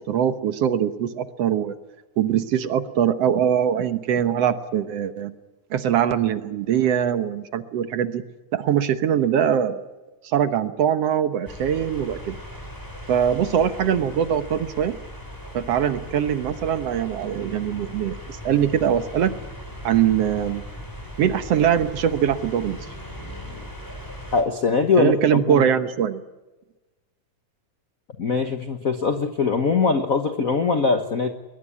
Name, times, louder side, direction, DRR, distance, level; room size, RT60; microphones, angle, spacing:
voice 1, 0.0-1.7 2.2-5.3 5.7-8.2 8.5-9.9 10.2-12.4 13.1-15.0 15.5-19.4 19.8-20.6 21.2-22.8 25.0-26.2, right 9 dB, 65° right, 10 dB, 1.9 m, -22 dB
sound 1, 11.4-24.4, equal, 5° left, 5.3 m, -38 dB
voice 2, 24.3-25.6 28.2-31.3, left 4 dB, 90° left, 7 dB, 0.7 m, -22 dB
22.0 x 20.0 x 9.8 m, 1.2 s
omnidirectional pair, 3.5 m